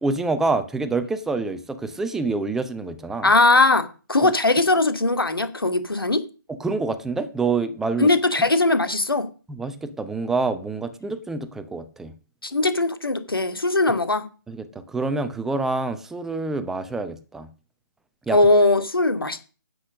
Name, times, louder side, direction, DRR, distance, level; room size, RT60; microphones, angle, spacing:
voice 1, 0.0-3.3 4.2-4.3 6.5-8.1 9.6-12.1 14.5-17.5 18.3-18.4, right 3 dB, 5° right, 0.7 m, -27 dB
voice 2, 3.2-6.2 8.0-9.3 12.4-14.3 18.3-19.4, left 2 dB, 85° left, 2.4 m, -20 dB
10.0 x 8.0 x 6.4 m
figure-of-eight pair, 145°, 12 cm